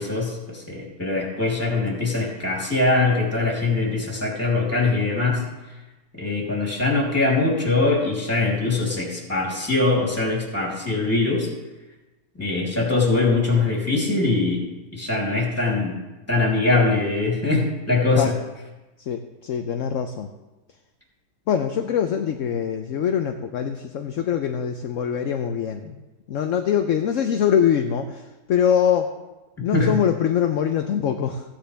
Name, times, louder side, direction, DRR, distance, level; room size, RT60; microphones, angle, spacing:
voice 1, 0.0-5.4 6.2-11.5 12.4-14.6 14.9-16.0 16.3-18.3 29.7-30.0, left 3 dB, 10° left, -3 dB, 3.1 m, -22 dB
voice 2, 19.1-20.3 21.5-26.0 26.3-28.2 28.5-29.1 29.6-31.4, left 8 dB, 65° left, 6 dB, 0.9 m, -23 dB
16.0 x 9.8 x 3.4 m, 1.1 s
omnidirectional pair, 1.6 m